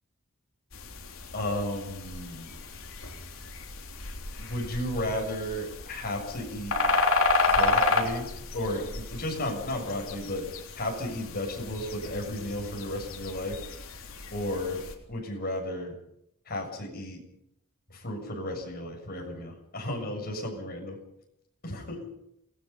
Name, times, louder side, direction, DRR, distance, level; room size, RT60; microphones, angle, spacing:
sound 1, 0.7-15.0, left 3 dB, 65° left, 3.6 m, -31 dB
voice 1, 1.3-2.6 4.4-6.8 7.5-8.3 8.5-10.5 10.8-13.6 14.3-16.0 16.5-17.2 17.9-21.0 21.6-22.1, left 1 dB, 45° left, 2 dB, 6.8 m, -33 dB
28.0 x 19.0 x 5.7 m, 0.77 s
head